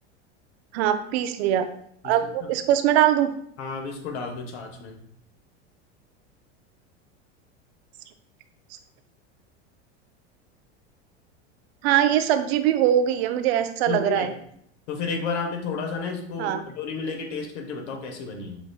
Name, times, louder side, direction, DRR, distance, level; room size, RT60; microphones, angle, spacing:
voice 1, 0.7-1.7 2.0-3.3 11.8-14.3 16.4-16.7, right 11 dB, 70° right, 9 dB, 0.5 m, -22 dB
voice 2, 3.6-5.0 13.9-14.3 14.9-18.6, left 4 dB, 75° left, 3 dB, 0.9 m, -32 dB
5.7 x 2.5 x 2.3 m, 0.67 s
hypercardioid pair, 105°, 34 cm